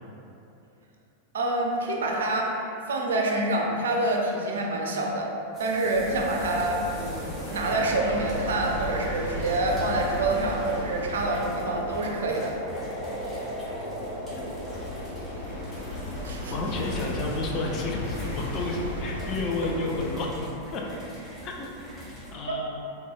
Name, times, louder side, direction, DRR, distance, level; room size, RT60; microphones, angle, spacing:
voice 1, 1.3-2.5 2.9-5.3 5.6-12.5 16.2-16.5 22.5-22.6, right 2 dB, 65° right, 0 dB, 0.3 m, -27 dB
sound 1, 5.5-22.4, equal, 10° left, 0.9 m, -43 dB
sound 2, 5.9-20.5, left 1 dB, 85° left, 0.9 m, -35 dB
voice 2, 16.5-20.8 21.4-21.7 22.3-22.8, left 2 dB, 35° left, -1 dB, 0.4 m, -31 dB
3.9 x 2.1 x 2.3 m, 2.8 s
figure-of-eight pair, 90°, 0 cm